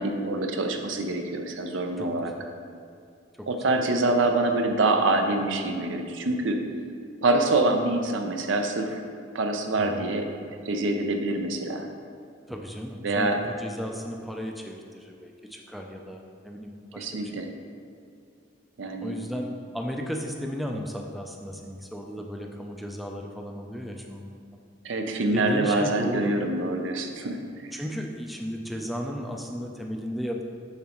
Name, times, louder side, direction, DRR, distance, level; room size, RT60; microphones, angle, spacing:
voice 1, 0.0-2.3 3.5-6.6 7.2-9.0 9.3-11.9 13.0-13.4 17.0-17.5 18.8-19.2 24.8-27.7, right 2 dB, 75° right, 4 dB, 0.6 m, -25 dB
voice 2, 2.0-2.5 3.4-3.5 9.8-10.0 12.5-17.3 19.0-24.4 25.3-26.4 27.7-30.4, equal, ahead, 1 dB, 0.3 m, -35 dB
7.2 x 5.1 x 2.9 m, 2.4 s
head